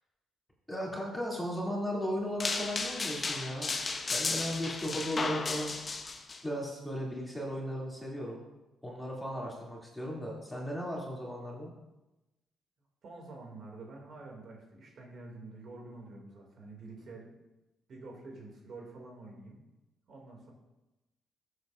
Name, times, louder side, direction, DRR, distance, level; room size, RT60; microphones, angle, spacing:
voice 1, 0.7-3.7 4.1-5.7 6.4-8.4 8.8-11.7, equal, 10° left, -4 dB, 2.8 m, -36 dB
sound 1, 2.4-6.4, left 3 dB, 35° left, 0.9 m, -34 dB
voice 2, 13.0-17.4 17.9-19.6 20.1-20.5, right 3 dB, 60° right, -1 dB, 2.6 m, -48 dB
13.5 x 7.9 x 2.6 m, 0.99 s
cardioid pair, 90°, 0 cm